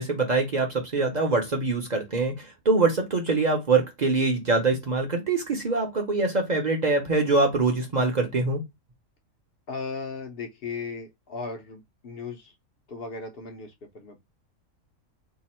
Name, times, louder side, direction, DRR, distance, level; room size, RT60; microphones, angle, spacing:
voice 1, 0.0-8.6, right 3 dB, 45° right, 0.6 m, -24 dB
voice 2, 9.7-12.5 12.9-14.2, left 4 dB, 55° left, 0.8 m, -36 dB
2.8 x 2.5 x 4.1 m
omnidirectional pair, 1.4 m